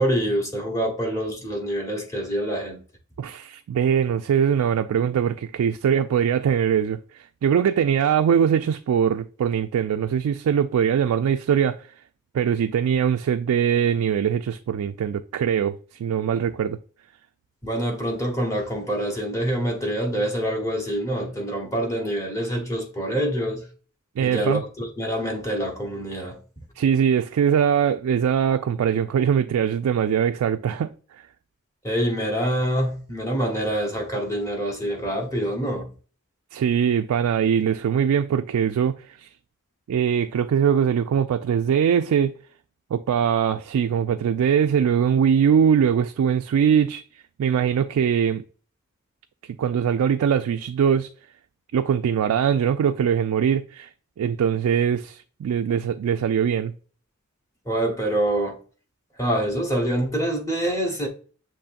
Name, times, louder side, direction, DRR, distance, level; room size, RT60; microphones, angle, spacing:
voice 1, 0.0-2.8 17.6-23.6 24.2-26.4 31.8-35.9 57.7-58.6 59.2-61.1, right 1 dB, 15° left, 1.0 m, -26 dB
voice 2, 3.2-7.0 7.4-11.8 12.3-16.8 24.2-24.6 26.8-30.9 36.5-39.3 39.9-42.3 42.9-47.0 47.4-48.4 49.6-51.1 51.7-53.9 54.2-56.7, right 8 dB, 85° right, 0.3 m, -22 dB
6.9 x 3.0 x 2.5 m
head